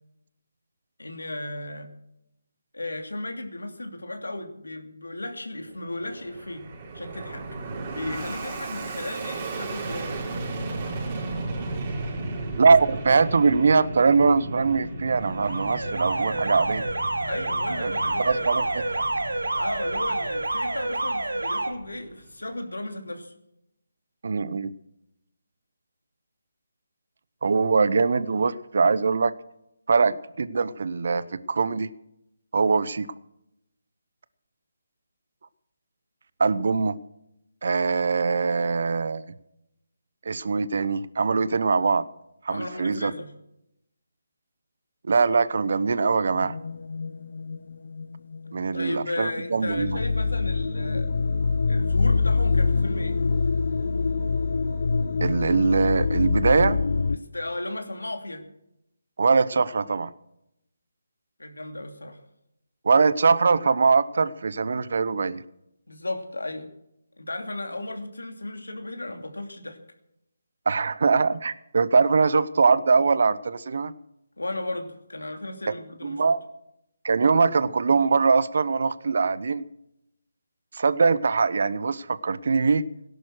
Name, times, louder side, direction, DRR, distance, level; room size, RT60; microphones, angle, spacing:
voice 1, 1.0-1.9 2.7-6.7 6.9-7.5 7.9-10.2 17.2-18.5 19.5-23.3 42.5-43.3 48.7-51.1 51.7-53.2 57.1-58.5 61.4-62.2 65.9-66.7 67.2-69.8 74.4-76.3, left 2 dB, 85° left, 5 dB, 2.8 m, -35 dB
Fixed-wing aircraft airplane, 5.7-22.3, right 2 dB, 30° right, 5.2 m, -35 dB
voice 2, 12.6-16.8 17.8-17.9 18.2-18.8 24.2-24.7 27.4-29.3 29.9-31.9 32.5-33.1 36.4-37.0 37.6-39.2 40.2-42.1 42.4-43.1 45.1-46.5 48.5-50.0 55.2-56.8 59.2-60.1 62.8-65.4 70.7-73.9 75.7-75.8 76.0-76.4 77.0-79.6 80.7-82.8, right 4 dB, 60° right, 17 dB, 0.9 m, -22 dB
Alarm, 15.2-21.7, right 2 dB, 85° right, 2.1 m, -28 dB
sound 1, 46.3-49.1 49.4-57.2, left 4 dB, 60° left, 0.8 m, -25 dB
17.5 x 11.5 x 6.3 m, 0.82 s
figure-of-eight pair, 155°, 0 cm